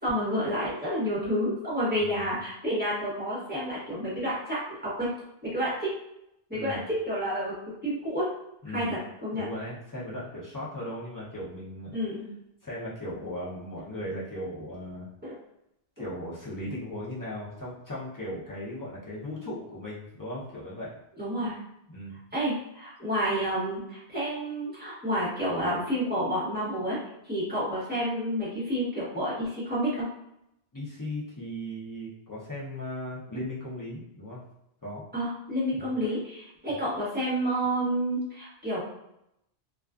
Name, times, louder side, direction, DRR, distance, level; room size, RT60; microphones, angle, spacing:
voice 1, 0.0-5.1 5.4-5.9 6.5-7.5 7.8-8.3 8.7-9.4 11.9-12.2 15.2-15.4 21.2-21.6 22.3-27.0 27.2-30.0 35.1-38.8, equal, 10° right, -9 dB, 0.9 m, -29 dB
voice 2, 2.0-2.3 6.5-6.8 8.6-9.0 9.3-12.0 12.6-15.1 16.0-20.9 21.9-22.2 30.7-34.4 34.8-35.0 35.8-35.9 36.7-36.8, left 1 dB, 25° left, -8 dB, 0.5 m, -37 dB
2.3 x 2.3 x 2.3 m, 0.81 s
omnidirectional pair, 1.1 m